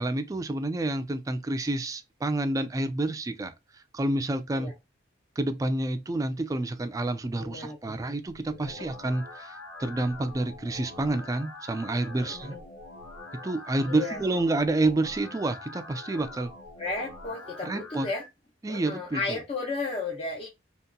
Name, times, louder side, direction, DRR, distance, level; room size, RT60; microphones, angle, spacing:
voice 1, 0.0-3.5 3.9-4.7 5.4-12.6 13.3-16.5 17.6-18.1 18.6-19.4, right 2 dB, 20° right, 0.3 m, -29 dB
voice 2, 7.4-8.0 8.8-8.9 12.2-12.6 13.9-14.2 16.8-18.2 18.7-20.5, left 3 dB, 30° left, 0.6 m, -34 dB
sound 1, 8.3-18.3, left 2 dB, 85° left, 1.0 m, -44 dB
2.9 x 2.7 x 2.2 m
head